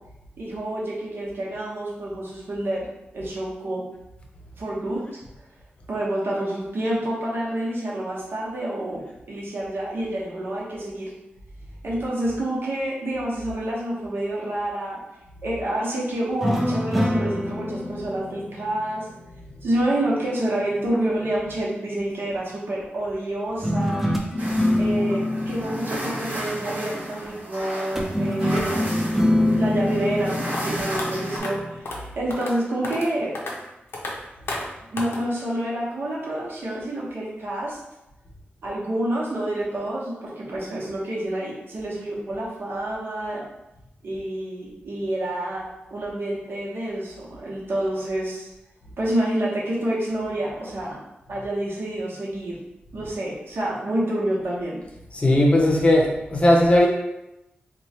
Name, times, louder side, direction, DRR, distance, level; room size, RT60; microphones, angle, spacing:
voice 1, 0.4-2.9 3.1-3.8 4.6-5.2 5.9-11.1 11.8-15.0 15.4-19.1 19.6-24.0 24.8-33.3 34.9-37.8 38.6-43.4 44.0-48.5 49.0-51.0 51.3-52.6 52.9-54.8, right 1 dB, 70° right, -5 dB, 1.0 m, -28 dB
sound 1, 16.4-19.8 23.6-27.0 28.0-31.8, left 1 dB, 5° right, 0.4 m, -25 dB
sound 2, 24.4-31.4, right 1 dB, 50° right, 0.8 m, -33 dB
sound 3, 30.5-30.6 31.0-31.1 31.4-31.5 31.9-32.0 32.3-32.5 32.8-33.1 33.4-33.5 33.9-34.1 34.5-34.6 35.0-35.2, left 2 dB, 90° left, 0.7 m, -31 dB
voice 2, 55.1-56.9, left 1 dB, 30° left, -1 dB, 0.7 m, -17 dB
3.0 x 2.3 x 4.1 m, 0.93 s
wide cardioid pair, 160°, 4 cm